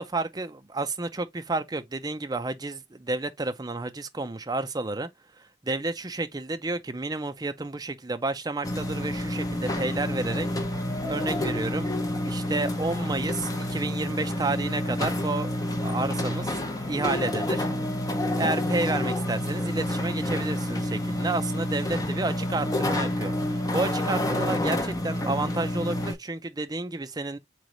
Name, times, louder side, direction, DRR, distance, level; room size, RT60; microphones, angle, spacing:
voice 1, 0.0-5.1 5.4-10.5 11.1-11.9 12.2-15.5 15.8-16.6 16.9-17.7 18.4-27.4, right 2 dB, 20° right, 0.5 m, -31 dB
sound 1, 8.6-26.1, left 1 dB, 20° left, 0.8 m, -28 dB
4.0 x 3.2 x 3.9 m
head